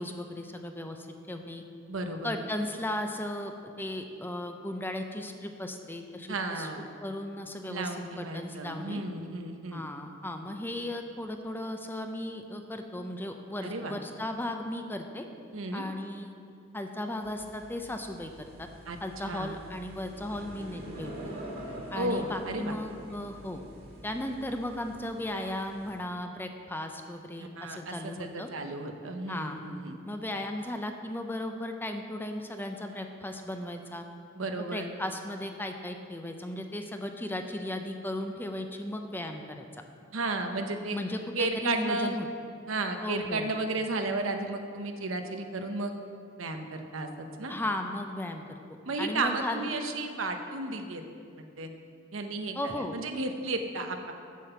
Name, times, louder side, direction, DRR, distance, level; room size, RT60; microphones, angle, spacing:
voice 1, 0.0-1.6 2.2-6.7 7.0-9.0 9.7-15.3 15.7-16.4 16.7-18.7 19.0-21.3 21.9-23.6 24.0-28.5 29.3-29.6 30.1-34.1 34.6-39.7 40.9-42.3 43.0-43.5 47.5-49.7 52.5-53.0, left 1 dB, 10° left, 5 dB, 0.5 m, -36 dB
voice 2, 1.9-2.3 6.3-6.8 7.7-9.8 13.6-13.9 15.5-15.8 18.9-19.0 19.2-19.5 22.0-22.8 27.4-30.0 34.3-34.9 40.1-41.0 41.4-42.2 42.7-45.9 46.4-47.5 48.8-51.0 51.4-51.7 52.1-52.5 52.9-54.1, right 2 dB, 85° right, 5 dB, 0.9 m, -33 dB
sound 1, 17.2-26.0, right 1 dB, 50° right, 1.9 m, -45 dB
7.6 x 7.4 x 6.9 m, 2.4 s
head